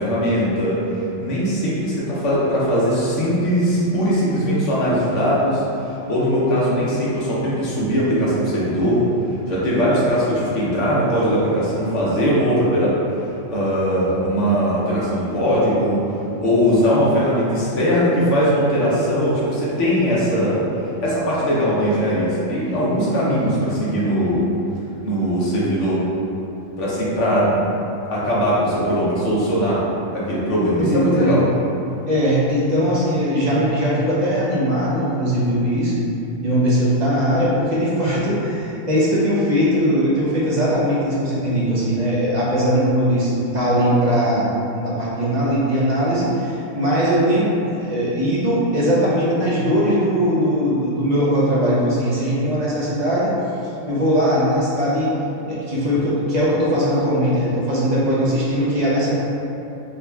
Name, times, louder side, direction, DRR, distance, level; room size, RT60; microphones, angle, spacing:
voice 1, 0.0-9.1 9.5-16.0 16.4-20.6 21.0-24.4 25.0-26.0 26.8-27.6 28.1-29.8 30.1-31.4, equal, 70° left, -7 dB, 1.1 m, -20 dB
voice 2, 30.8-31.4 32.1-35.9 36.4-53.3 53.9-55.1 55.4-59.1, equal, 40° right, -8 dB, 0.7 m, -20 dB
4.0 x 3.1 x 2.3 m, 2.9 s
omnidirectional pair, 1.3 m